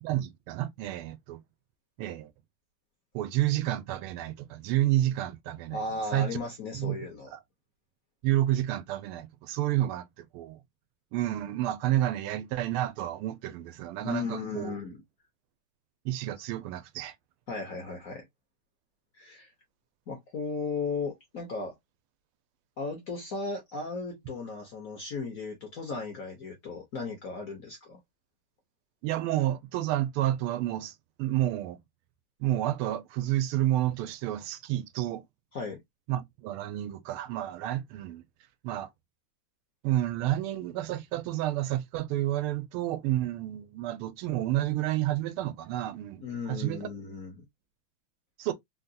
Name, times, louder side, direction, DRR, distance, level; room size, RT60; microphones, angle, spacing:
voice 1, 0.0-1.4 2.0-2.3 3.1-5.8 6.1-6.3 6.7-7.0 7.3-7.4 8.2-10.6 11.1-14.8 16.0-17.1 29.0-31.8 32.4-35.2 36.1-38.2 38.6-38.9 39.8-46.9 48.4-48.5, right 14 dB, 90° right, 1.5 m, -30 dB
voice 2, 5.7-7.3 14.0-15.0 17.5-18.3 19.2-19.5 20.1-21.7 22.8-28.0 35.5-35.8 46.2-47.4, left 4 dB, 60° left, 0.9 m, -36 dB
3.8 x 2.2 x 2.6 m
omnidirectional pair, 2.3 m